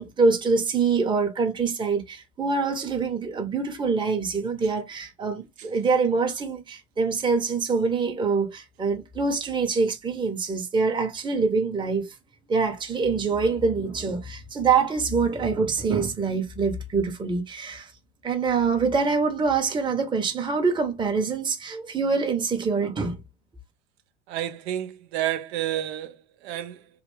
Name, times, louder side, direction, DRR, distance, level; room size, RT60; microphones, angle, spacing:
voice 1, 0.0-12.1 12.5-17.9 18.2-23.2, right 4 dB, 15° right, 0.8 m, -25 dB
voice 2, 24.3-26.2 26.4-26.8, right 12 dB, 70° right, 0.6 m, -30 dB
3.3 x 2.4 x 3.1 m
hypercardioid pair, 85°, 32 cm